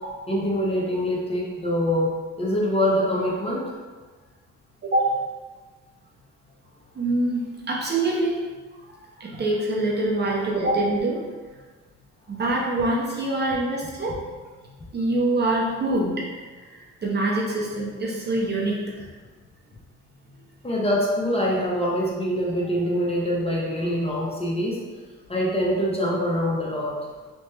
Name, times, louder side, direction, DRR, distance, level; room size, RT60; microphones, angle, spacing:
voice 1, 0.3-2.1 2.4-3.6 10.3-10.5 20.6-24.8 25.3-27.0, equal, 20° left, -4 dB, 0.7 m, -24 dB
voice 2, 7.0-8.4 9.2-11.2 12.3-14.2 14.9-16.3 16.7-18.8, right 2 dB, 35° right, -3 dB, 0.6 m, -24 dB
3.0 x 2.1 x 3.2 m, 1.4 s
cardioid pair, 90°, 30 cm